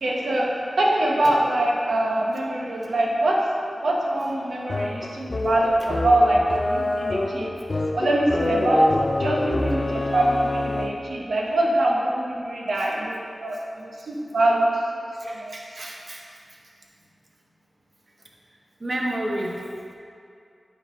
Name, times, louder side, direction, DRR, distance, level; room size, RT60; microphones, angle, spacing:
voice 1, 0.0-3.4 3.8-7.5 7.9-8.9 9.2-14.7 15.3-15.5, right 1 dB, 90° right, -2 dB, 0.9 m, -23 dB
sound 1, 4.7-11.2, left 2 dB, 45° left, 0.4 m, -27 dB
voice 2, 15.2-16.2 18.8-19.6, right 1 dB, 55° right, -2 dB, 1.1 m, -30 dB
9.0 x 3.9 x 3.8 m, 2.5 s
cardioid pair, 50°, 0 cm